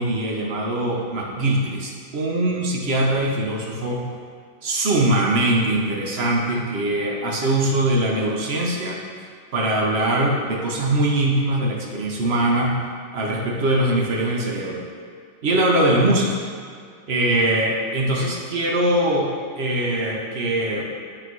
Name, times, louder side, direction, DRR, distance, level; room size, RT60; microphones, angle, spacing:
voice 1, 0.0-4.0 4.6-9.0 9.5-12.8 13.1-14.9 15.4-16.4 17.1-20.9, right 1 dB, 45° right, -1 dB, 0.8 m, -22 dB
8.2 x 3.8 x 4.6 m, 2.2 s
omnidirectional pair, 2.2 m